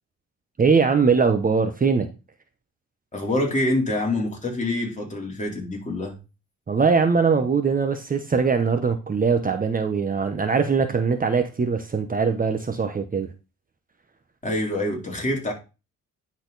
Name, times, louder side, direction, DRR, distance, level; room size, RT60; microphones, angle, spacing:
voice 1, 0.6-2.1 6.7-13.3, right 5 dB, 30° right, 1.0 m, -21 dB
voice 2, 3.1-6.2 14.4-15.5, left 1 dB, 25° left, 3.5 m, -26 dB
10.0 x 4.3 x 4.0 m
cardioid pair, 90°, 30 cm